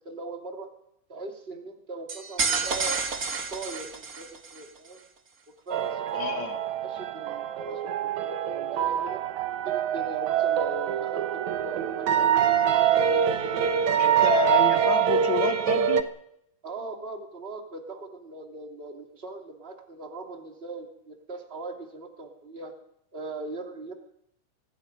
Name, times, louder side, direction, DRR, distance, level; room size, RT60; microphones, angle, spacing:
voice 1, 0.0-0.7 1.1-3.0 3.5-5.0 5.7-6.4 6.8-9.2 9.6-12.3 12.7-14.2 16.6-22.7 23.1-23.9, right 3 dB, 20° right, 2 dB, 2.9 m, -39 dB
sound 1, 2.1-4.6, right 5 dB, 35° right, 1.7 m, -29 dB
sound 2, 5.7-16.0, right 9 dB, 70° right, 2.4 m, -25 dB
voice 2, 6.1-6.6 14.0-16.0, left 6 dB, 60° left, 4 dB, 3.4 m, -28 dB
25.5 x 21.0 x 5.4 m, 0.76 s
omnidirectional pair, 3.7 m